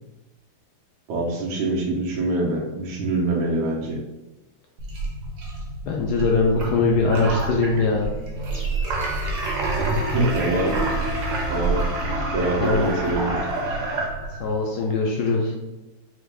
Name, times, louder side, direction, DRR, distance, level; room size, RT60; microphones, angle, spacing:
voice 1, 1.1-4.0 9.7-10.8 11.5-11.8 12.3-13.4, right 2 dB, 85° right, -1 dB, 1.6 m, -24 dB
sound 1, 4.8-14.5, right 2 dB, 65° right, 1.3 m, -27 dB
voice 2, 5.9-8.1 12.6-12.9 14.4-15.5, left 3 dB, 75° left, 0 dB, 1.0 m, -21 dB
sound 2, 7.7-14.1, left 3 dB, 25° left, 0.5 m, -37 dB
4.6 x 2.4 x 3.3 m, 1.1 s
omnidirectional pair, 2.1 m